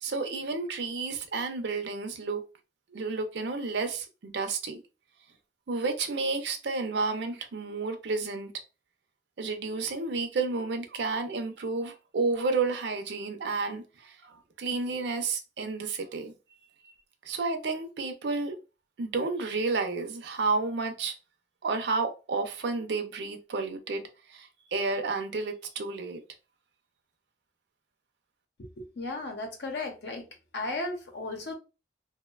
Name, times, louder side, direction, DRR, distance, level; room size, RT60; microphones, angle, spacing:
voice 1, 0.0-2.4 2.9-4.8 5.7-8.5 9.4-16.3 16.8-16.9 17.2-18.6 19.0-21.1 21.6-24.0 24.3-26.2, right 3 dB, 85° right, 0.5 m, -31 dB
voice 2, 28.6-30.2 30.5-31.5, left 2 dB, 85° left, 0.7 m, -35 dB
2.8 x 2.1 x 2.3 m
head